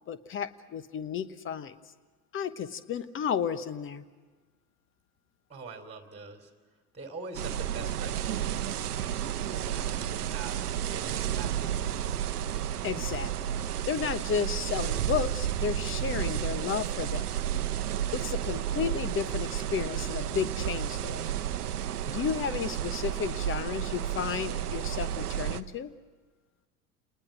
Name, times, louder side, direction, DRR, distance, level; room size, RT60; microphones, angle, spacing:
voice 1, 0.1-1.7 2.3-4.0 12.8-13.5 13.9-17.3 18.1-21.2 22.1-25.9, left 7 dB, 25° left, 14 dB, 1.1 m, -33 dB
voice 2, 5.5-6.5 6.9-12.3, right 3 dB, 15° right, 4 dB, 2.8 m, -44 dB
sound 1, 7.4-25.6, right 11 dB, 75° right, 0.9 m, -32 dB
29.5 x 20.0 x 6.3 m, 1.4 s
figure-of-eight pair, 80°, 46 cm